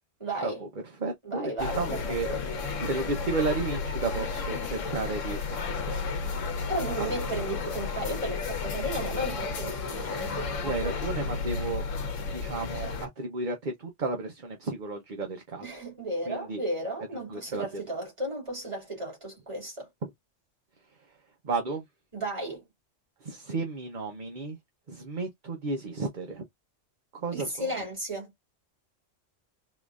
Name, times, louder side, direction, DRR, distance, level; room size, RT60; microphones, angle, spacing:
voice 1, 0.2-0.6 1.2-2.4 6.7-10.5 10.8-10.9 15.6-19.9 22.1-22.6 27.3-28.3, right 1 dB, 25° right, 2.3 m, -34 dB
voice 2, 1.0-5.8 6.6-6.7 7.0-7.1 10.6-11.8 12.3-15.7 16.3-16.6 17.3-17.8 20.0-20.1 21.4-21.8 23.2-24.6 24.9-26.4 27.1-27.8, right 3 dB, 45° right, 0.9 m, -33 dB
sound 1, 1.6-13.1, left 4 dB, 80° left, 1.3 m, -32 dB
3.7 x 3.1 x 2.4 m
omnidirectional pair, 1.3 m